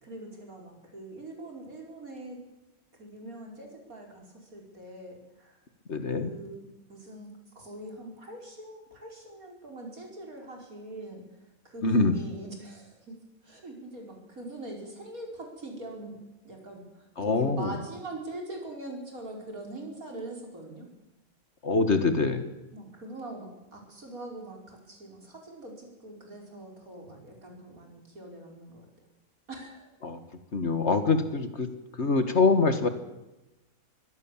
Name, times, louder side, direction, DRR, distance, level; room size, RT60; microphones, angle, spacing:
voice 1, 0.0-2.4 3.0-5.6 6.1-11.2 11.6-13.1 13.4-16.1 16.4-20.9 22.3-22.4 22.7-28.9 29.5-29.9, right 2 dB, 75° right, 2 dB, 5.6 m, -43 dB
voice 2, 5.9-6.3 11.8-12.2 17.2-17.8 21.6-22.4 30.0-30.2 30.5-31.7 32.0-32.9, left 3 dB, 50° left, 10 dB, 2.0 m, -24 dB
23.0 x 17.0 x 7.4 m, 0.99 s
omnidirectional pair, 1.5 m